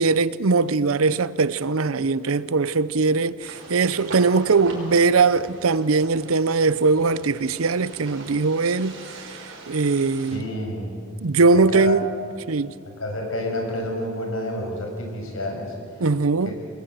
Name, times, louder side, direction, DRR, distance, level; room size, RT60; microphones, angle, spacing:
voice 1, 0.0-9.0 9.7-10.5 11.2-12.1 12.5-12.7 16.0-16.5, right 4 dB, 85° right, 0.7 m, -20 dB
sound 1, 3.4-10.4, right 2 dB, 65° right, 5.2 m, -41 dB
voice 2, 10.3-10.9 11.5-11.9 13.0-15.7, left 1 dB, 75° left, 6.4 m, -29 dB
28.0 x 21.0 x 7.9 m
head